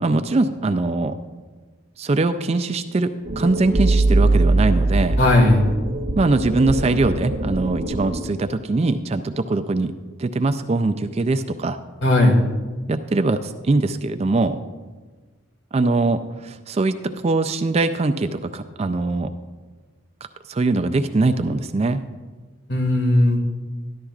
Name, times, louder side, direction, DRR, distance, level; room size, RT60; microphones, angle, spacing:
voice 1, 0.0-1.2 2.0-5.2 6.2-9.9 10.2-11.8 12.9-14.6 15.7-19.3 20.5-22.0, right 3 dB, 30° right, 9 dB, 0.3 m, -22 dB
sound 1, 3.3-8.2, right 2 dB, 45° right, 0.8 m, -21 dB
voice 2, 5.2-5.6 12.0-12.4 22.7-23.5, left 1 dB, 55° left, 1 dB, 1.9 m, -16 dB
14.0 x 11.5 x 2.4 m, 1.4 s
head